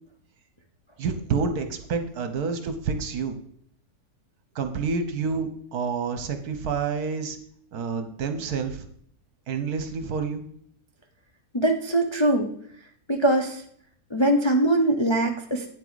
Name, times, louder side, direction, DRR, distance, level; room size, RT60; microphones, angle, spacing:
voice 1, 1.0-3.4 4.5-7.4 7.7-8.8 9.5-10.4, right 5 dB, 65° right, 8 dB, 1.4 m, -28 dB
voice 2, 11.5-12.5 13.1-13.6 14.1-15.7, right 1 dB, 30° left, 2 dB, 0.5 m, -22 dB
9.1 x 7.7 x 4.0 m, 0.64 s
omnidirectional pair, 1.8 m